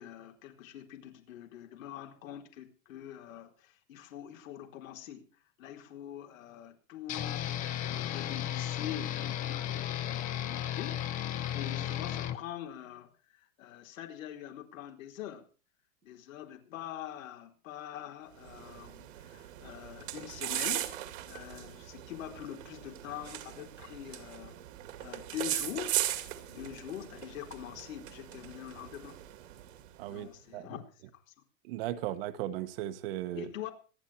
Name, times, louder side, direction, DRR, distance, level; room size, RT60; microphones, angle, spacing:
voice 1, 0.0-5.3 5.6-13.1 13.6-15.5 16.0-24.6 25.0-26.0 26.5-29.2 30.0-30.8 31.1-31.5 33.3-33.7, left 11 dB, 80° left, 4.3 m, -44 dB
sound 1, 7.1-12.4, left 11 dB, 20° left, 0.8 m, -34 dB
sound 2, 18.3-30.1, right 13 dB, 70° right, 2.5 m, -39 dB
voice 2, 30.0-30.8 31.7-33.5, right 13 dB, 45° right, 1.3 m, -37 dB
26.0 x 10.0 x 4.4 m
supercardioid pair, 170°, 39 cm